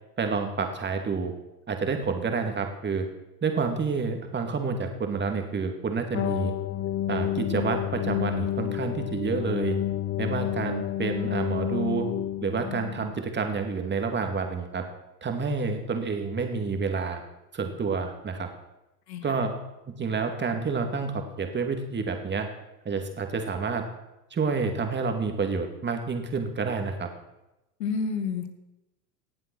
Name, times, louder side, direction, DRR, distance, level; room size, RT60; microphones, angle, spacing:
voice 1, 0.2-1.3 1.7-3.1 3.4-6.5 7.1-9.8 10.2-12.1 12.4-14.8 15.2-17.2 17.5-18.5 19.2-19.5 19.9-22.5 22.8-23.9 24.3-27.1, right 4 dB, 20° right, 5 dB, 2.4 m, -29 dB
sound 1, 6.1-13.2, left 12 dB, 25° left, 0.4 m, -30 dB
voice 2, 27.8-28.5, left 5 dB, 85° left, 8 dB, 2.0 m, -29 dB
18.0 x 7.4 x 6.3 m, 0.93 s
hypercardioid pair, 110°, 49 cm